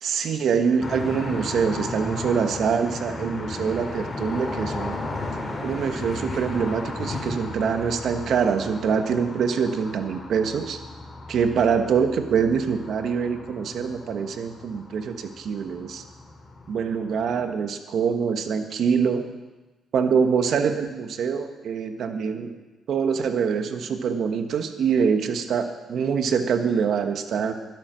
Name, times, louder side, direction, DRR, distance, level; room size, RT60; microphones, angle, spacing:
voice 1, 0.0-5.0 5.6-10.8 11.3-16.0 16.7-19.3 19.9-22.5 22.9-27.5, right 6 dB, 65° right, 7 dB, 1.3 m, -24 dB
sound 1, 0.8-17.5, left 2 dB, 25° left, 3.4 m, -35 dB
12.0 x 12.0 x 6.3 m, 1.2 s
cardioid pair, 90°, 0 cm